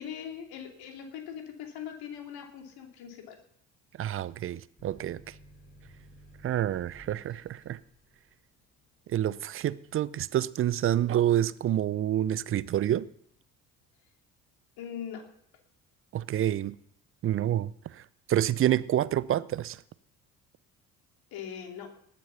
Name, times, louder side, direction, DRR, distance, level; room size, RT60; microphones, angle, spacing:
voice 1, 0.0-3.4 14.8-15.3 21.3-21.9, left 8 dB, 55° left, 2.6 m, -41 dB
voice 2, 4.0-5.4 6.4-7.8 9.1-13.1 16.1-16.8 17.2-18.0 18.3-19.8, right 12 dB, 30° right, 0.5 m, -28 dB
sound 1, 4.8-12.1 12.5-13.2, right 1 dB, 20° left, 6.2 m, -56 dB
19.0 x 7.5 x 5.7 m
figure-of-eight pair, 55°, 45 cm